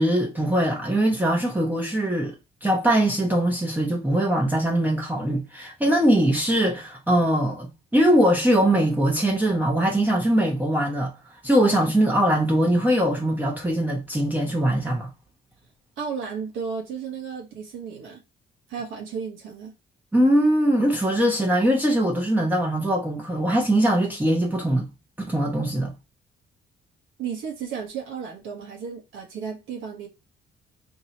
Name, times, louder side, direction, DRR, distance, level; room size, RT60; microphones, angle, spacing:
voice 1, 0.0-2.3 2.6-11.1 11.4-15.1 20.1-24.9 25.2-25.9, right 1 dB, 10° right, 0.9 m, -21 dB
voice 2, 16.0-18.2 18.7-19.7 27.2-30.1, right 6 dB, 85° right, 1.1 m, -33 dB
4.7 x 2.8 x 2.8 m
cardioid pair, 90°, 20 cm